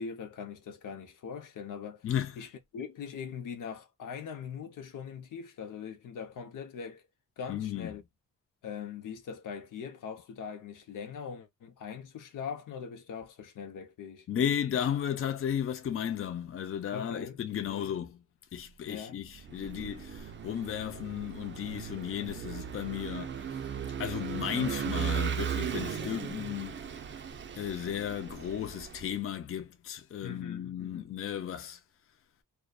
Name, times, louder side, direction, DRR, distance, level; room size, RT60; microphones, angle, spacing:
voice 1, 0.0-2.1 2.4-7.0 7.4-8.0 8.6-14.3 16.9-17.4 17.7-17.9 18.8-19.2 26.0-26.2 30.2-31.2, left 7 dB, 80° left, 0.7 m, -41 dB
voice 2, 2.0-2.5 7.5-8.0 14.3-18.2 18.5-23.6 24.0-26.8 27.6-31.8, left 9 dB, 45° left, 0.4 m, -34 dB
Vehicle / Engine, 19.3-29.1, right 8 dB, 40° right, 0.4 m, -37 dB
2.6 x 2.1 x 2.2 m
wide cardioid pair, 130°, 31 cm